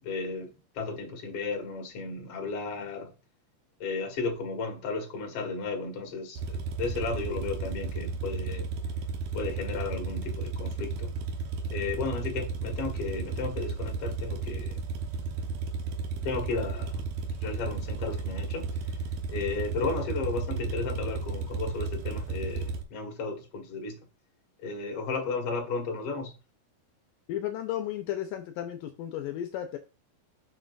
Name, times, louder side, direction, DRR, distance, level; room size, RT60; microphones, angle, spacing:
voice 1, 0.0-3.1 3.8-8.7 9.3-11.1 11.7-14.8 16.2-17.1 17.4-18.7 19.3-24.0 24.6-26.3, left 4 dB, 45° left, 2.6 m, -34 dB
sound 1, 6.4-22.8, right 4 dB, 65° right, 2.2 m, -34 dB
voice 2, 27.3-29.8, left 11 dB, 80° left, 2.3 m, -34 dB
7.5 x 6.4 x 2.5 m
omnidirectional pair, 4.1 m